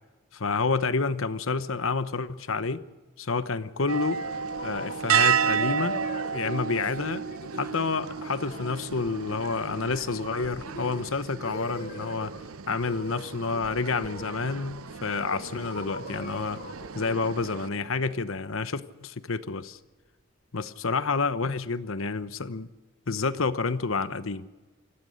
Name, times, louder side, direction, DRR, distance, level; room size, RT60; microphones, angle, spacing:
voice 1, 0.3-2.8 3.2-4.2 4.6-6.0 6.3-7.2 7.6-12.3 12.7-16.6 16.9-19.8 20.5-22.7 23.1-24.5, left 4 dB, 70° left, 14 dB, 1.0 m, -29 dB
sound 1, 3.8-12.3 12.8-13.2 13.5-14.8 15.2-19.0, left 1 dB, 40° left, 3.4 m, -43 dB
sound 2, 3.9-17.7, right 7 dB, 80° right, 0.8 m, -32 dB
sound 3, 16.0-18.4, equal, 50° right, 7.4 m, -54 dB
25.5 x 16.5 x 6.5 m, 1.2 s
head